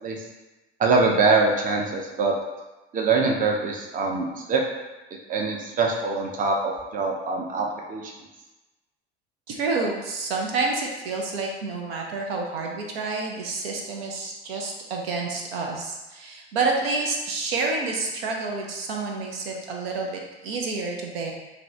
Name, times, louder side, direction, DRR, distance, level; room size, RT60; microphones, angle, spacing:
voice 1, 0.8-2.3 2.9-4.6 5.3-8.1, right 4 dB, 25° right, 0 dB, 0.6 m, -23 dB
voice 2, 9.5-21.3, right 3 dB, 75° right, 0 dB, 0.6 m, -29 dB
2.6 x 2.6 x 3.1 m, 1.1 s
hypercardioid pair, 65°, 31 cm